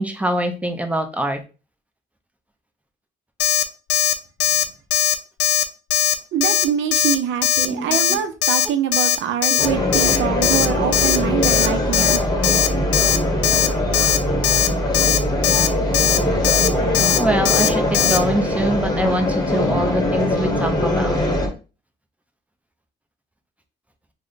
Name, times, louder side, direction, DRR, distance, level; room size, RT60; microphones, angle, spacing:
voice 1, 0.0-1.4 7.7-8.2 9.5-9.6 17.2-21.2, right 1 dB, 5° right, 0.6 m, -24 dB
Alarm, 3.4-3.6 3.9-4.1 4.4-4.6 4.9-5.1 5.4-5.6 5.9-6.1 6.4-6.6 6.9-7.1 7.4-7.7 7.9-8.1 8.4-8.6 8.9-9.2 9.4-9.7 9.9-10.2 10.4-10.7 10.9-11.2 11.4-11.7 11.9-12.2 12.4-12.7 12.9-13.2 13.4-13.7 13.9-14.2 14.4-14.7 14.9-15.2 15.4-15.7 15.9-16.2 16.4-16.7 16.9-17.2 17.4-17.7 17.9-18.2, left 11 dB, 60° left, 0.5 m, -18 dB
voice 2, 6.3-12.2, right 9 dB, 75° right, 0.5 m, -24 dB
sound 1, 9.6-21.5, left 1 dB, 20° left, 1.1 m, -21 dB
3.1 x 2.1 x 3.9 m
cardioid pair, 90°, 20 cm